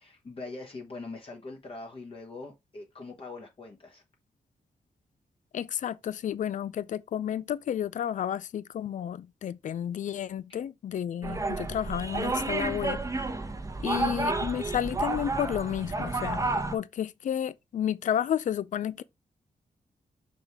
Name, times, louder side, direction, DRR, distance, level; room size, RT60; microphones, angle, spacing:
voice 1, 0.0-4.0 14.0-14.3, left 3 dB, 40° left, 1.3 m, -42 dB
voice 2, 5.5-13.0 13.8-16.4 16.7-19.0, left 10 dB, 65° left, 0.4 m, -31 dB
sound 1, 11.2-16.8, right 2 dB, 25° right, 1.0 m, -31 dB
6.3 x 5.1 x 3.5 m
wide cardioid pair, 140°, 14 cm